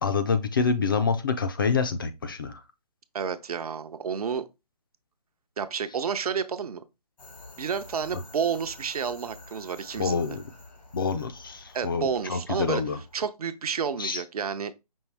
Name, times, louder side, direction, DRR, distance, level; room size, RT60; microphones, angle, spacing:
voice 1, 0.0-2.6 10.0-10.4 10.9-13.0 14.0-14.2, left 5 dB, 35° left, 0.4 m, -27 dB
voice 2, 3.1-4.5 5.6-6.8 7.6-10.3 11.7-12.8 13.1-14.7, right 6 dB, 65° right, 0.6 m, -30 dB
sound 1, 7.2-13.2, left 2 dB, 85° left, 1.7 m, -49 dB
5.4 x 2.6 x 3.3 m
hypercardioid pair, 155°, 21 cm